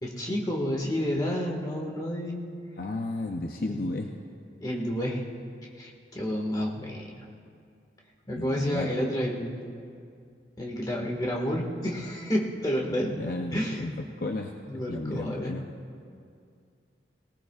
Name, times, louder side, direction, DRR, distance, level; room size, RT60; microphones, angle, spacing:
voice 1, 0.0-2.4 3.7-3.8 4.6-5.2 5.8-7.2 8.3-9.8 10.6-13.1 13.5-13.9 14.7-15.5, equal, 20° left, -2 dB, 1.7 m, -30 dB
voice 2, 2.8-4.1 8.4-8.9 13.1-15.7, left 2 dB, 50° left, 3 dB, 0.6 m, -33 dB
20.0 x 18.5 x 2.4 m, 2.3 s
head